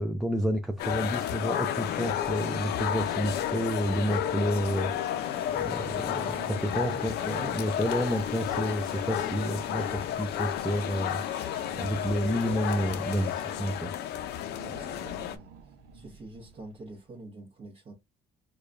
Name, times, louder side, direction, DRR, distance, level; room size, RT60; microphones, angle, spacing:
voice 1, 0.0-5.2 5.5-11.2 11.7-13.9, equal, ahead, 0.4 m, -30 dB
sound 1, 0.8-15.4, left 10 dB, 75° left, 0.5 m, -32 dB
sound 2, 1.6-17.0, right 6 dB, 85° right, 0.7 m, -50 dB
sound 3, 5.2-13.8, left 5 dB, 35° left, 0.7 m, -49 dB
voice 2, 6.5-7.6 14.6-15.5 15.9-17.9, right 2 dB, 40° right, 1.1 m, -46 dB
4.7 x 2.3 x 2.5 m
cardioid pair, 110°, 17 cm